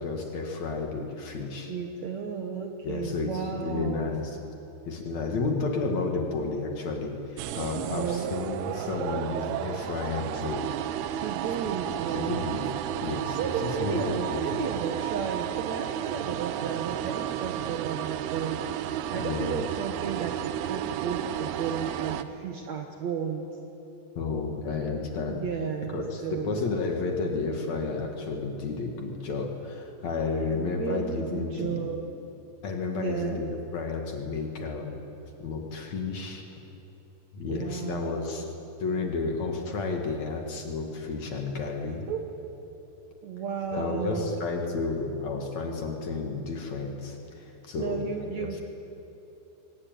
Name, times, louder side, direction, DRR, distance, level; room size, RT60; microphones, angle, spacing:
voice 1, 0.0-1.7 2.8-4.4 4.9-10.7 12.1-12.6 13.0-13.5 13.8-14.7 19.1-19.6 24.2-25.4 25.9-31.8 32.6-35.0 35.4-36.6 37.3-38.5 38.8-42.0 43.7-48.0 48.4-48.6, left 4 dB, 50° left, 2 dB, 3.1 m, -32 dB
voice 2, 1.7-4.1 7.8-8.3 11.1-12.4 13.3-23.5 25.3-26.6 30.5-32.0 32.9-33.4 37.5-38.5 42.1-42.2 43.2-44.4 47.8-48.6, right 6 dB, 60° right, 3 dB, 2.0 m, -33 dB
sound 1, 7.4-22.2, right 11 dB, 90° right, 2.9 m, -32 dB
23.0 x 19.5 x 9.4 m, 2.9 s
omnidirectional pair, 4.5 m